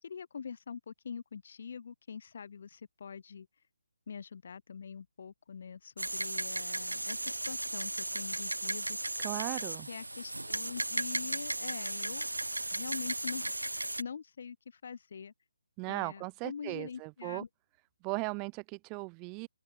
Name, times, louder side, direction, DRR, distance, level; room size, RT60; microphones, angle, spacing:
voice 1, 0.0-3.5 4.1-9.0 9.9-12.3 12.7-13.6 14.0-15.3 15.9-17.5, left 6 dB, 50° left, 4.7 m, -44 dB
sound 1, 6.0-14.0, right 2 dB, 85° right, 0.6 m, -35 dB
voice 2, 9.2-9.9 15.8-17.4 18.0-19.5, right 32 dB, 20° right, 0.4 m, -37 dB
open air
figure-of-eight pair, 150°, 0 cm